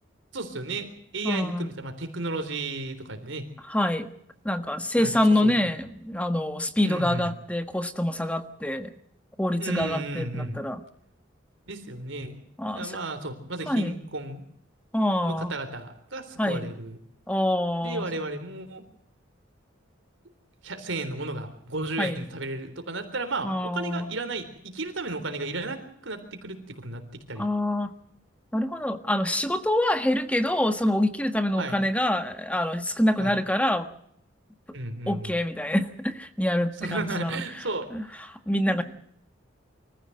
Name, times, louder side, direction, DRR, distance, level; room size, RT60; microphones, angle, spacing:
voice 1, 0.3-3.5 5.0-5.5 6.8-7.3 9.6-10.6 11.7-12.4 12.7-14.4 15.2-17.0 17.8-18.8 20.6-27.0 27.3-27.5 31.6-31.8 33.2-33.4 34.7-35.3 36.8-38.3 38.7-38.8, right 2 dB, 85° right, 7 dB, 3.8 m, -34 dB
voice 2, 1.2-1.7 3.7-4.1 4.4-8.9 9.4-10.8 12.6-13.0 13.7-14.0 14.9-15.6 16.4-16.7 17.3-18.1 22.0-22.3 23.4-24.1 27.4-27.9 28.5-33.9 35.1-37.4 37.9-38.8, left 1 dB, 5° left, 9 dB, 1.4 m, -26 dB
24.5 x 15.0 x 7.8 m, 0.70 s
head